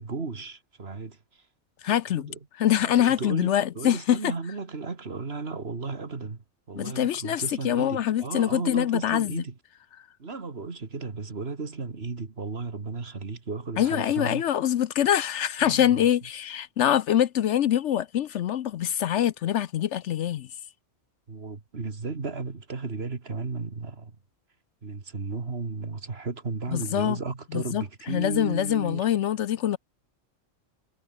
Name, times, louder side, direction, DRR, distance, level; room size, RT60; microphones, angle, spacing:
voice 1, 0.0-1.5 2.1-2.4 2.8-9.5 10.2-14.4 15.6-16.1 21.3-24.2 24.8-29.1, right 4 dB, 50° right, 2.2 m, -34 dB
voice 2, 1.8-4.3 6.7-9.3 13.8-20.5 26.7-27.2 27.5-29.8, left 11 dB, 70° left, 0.9 m, -24 dB
omnidirectional pair, 1.3 m